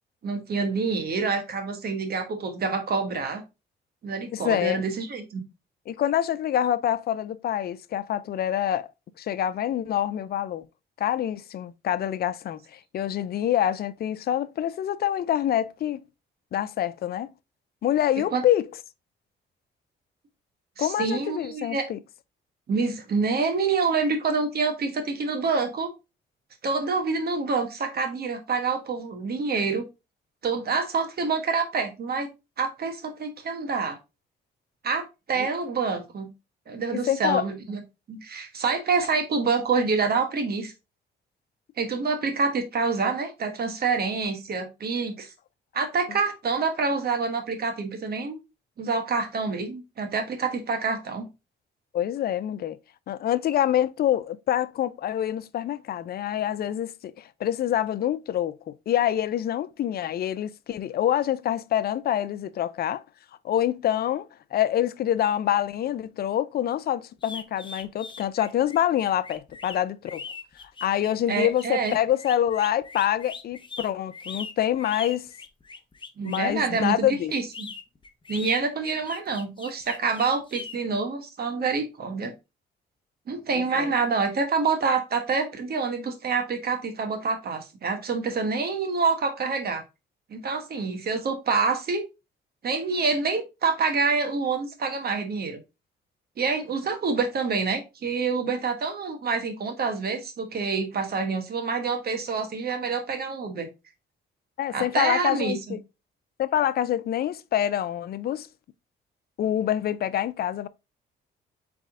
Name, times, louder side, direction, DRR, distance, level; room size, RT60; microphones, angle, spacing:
voice 1, 0.2-3.4 4.0-5.4 18.3-18.4 20.8-21.8 22.7-25.9 26.6-29.9 30.4-32.3 32.6-34.0 34.8-36.3 36.7-37.8 38.1-40.7 41.8-45.3 45.7-48.4 48.8-51.3 71.3-71.9 76.2-77.1 77.3-77.4 78.3-82.3 83.3-89.8 90.3-92.0 92.6-95.6 96.4-103.7 104.7-105.8, right 4 dB, 50° right, 1.2 m, -27 dB
voice 2, 4.3-4.8 5.9-8.9 9.2-10.6 11.0-16.0 16.5-17.3 17.8-18.6 20.8-22.0 35.4-35.5 36.9-37.4 51.9-52.8 53.1-63.0 63.4-64.3 64.5-70.2 70.8-75.3 76.2-77.3 83.5-83.9 104.6-105.8 106.4-108.5 109.4-110.7, left 11 dB, 50° left, 0.4 m, -26 dB
sound 1, 67.2-76.5 77.3-80.8, left 5 dB, 25° left, 0.7 m, -40 dB
4.1 x 3.5 x 3.6 m
cardioid pair, 90°, 20 cm